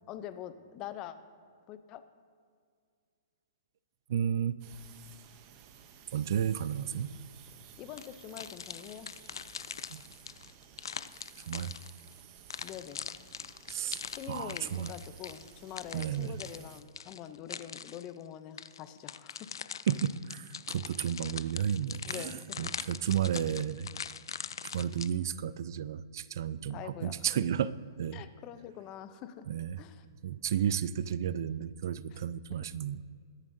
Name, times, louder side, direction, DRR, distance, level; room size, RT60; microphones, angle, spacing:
voice 1, 0.1-1.2 1.7-2.1 7.8-9.1 12.6-13.0 14.1-19.5 22.1-22.8 26.7-27.2 28.1-29.5 29.8-30.1 32.1-32.2 32.5-32.6, left 10 dB, 25° left, 11 dB, 0.5 m, -44 dB
voice 2, 4.1-4.6 6.1-7.1 9.9-10.0 11.5-11.7 13.7-14.9 15.9-16.3 19.9-23.9 24.7-27.7 28.0-28.2 29.5-29.8 30.2-33.0, right 9 dB, 55° right, 17 dB, 0.4 m, -32 dB
sound 1, 4.6-16.8, right 8 dB, 30° right, 0.7 m, -55 dB
sound 2, 8.0-12.1 12.5-18.1 18.6-25.1, left 7 dB, 90° left, 0.4 m, -42 dB
21.5 x 7.3 x 2.7 m, 2.2 s
hypercardioid pair, 160°, 2 cm